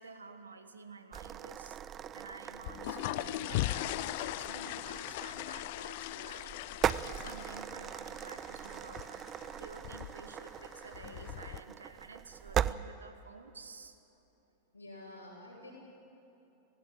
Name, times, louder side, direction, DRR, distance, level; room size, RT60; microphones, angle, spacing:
voice 1, 0.0-1.8 2.1-6.6 7.0-9.3 9.6-14.0, right 4 dB, 75° right, 9 dB, 1.3 m, -51 dB
sound 1, 1.1-12.7, right 10 dB, 30° right, 0.4 m, -39 dB
sound 2, 2.5-11.6, left 17 dB, 50° left, 0.4 m, -40 dB
voice 2, 14.7-15.7, left 2 dB, 85° left, -4 dB, 6.7 m, -49 dB
18.5 x 16.5 x 9.1 m, 3.0 s
figure-of-eight pair, 90°, 0 cm